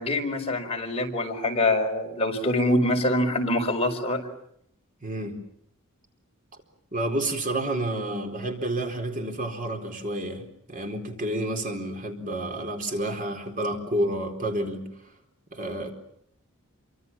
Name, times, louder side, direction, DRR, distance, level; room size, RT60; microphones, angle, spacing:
voice 1, 0.0-4.3, left 1 dB, 30° left, 2 dB, 4.8 m, -25 dB
voice 2, 5.0-5.4 6.9-14.8 15.5-15.9, right 1 dB, 40° right, 4 dB, 4.3 m, -30 dB
28.0 x 25.0 x 7.4 m, 0.73 s
head